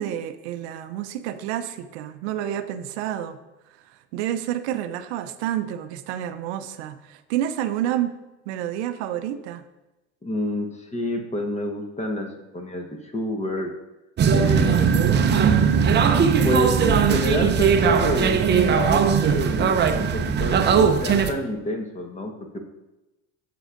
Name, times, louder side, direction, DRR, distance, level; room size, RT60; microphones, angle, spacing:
voice 1, 0.0-3.4 3.9-8.1 8.5-9.6, right 11 dB, 80° right, 10 dB, 0.6 m, -29 dB
voice 2, 10.2-13.7 14.3-14.9 16.4-22.7, left 1 dB, 20° left, 4 dB, 1.2 m, -28 dB
sound 1, 14.2-21.3, right 6 dB, 30° right, 0.6 m, -19 dB
8.0 x 6.8 x 2.5 m, 0.99 s
supercardioid pair, 85°, 33 cm